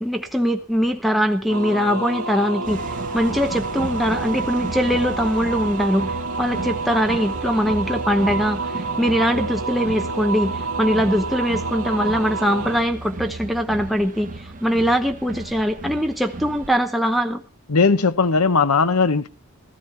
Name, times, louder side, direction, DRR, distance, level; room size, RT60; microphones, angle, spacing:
voice 1, 0.0-17.4, equal, ahead, 0.9 m, -22 dB
sound 1, 1.5-12.8, right 4 dB, 70° right, 2.2 m, -28 dB
sound 2, 2.6-16.8, right 2 dB, 35° right, 0.8 m, -34 dB
voice 2, 17.7-19.3, left 4 dB, 80° left, 1.0 m, -18 dB
16.5 x 13.5 x 4.4 m
head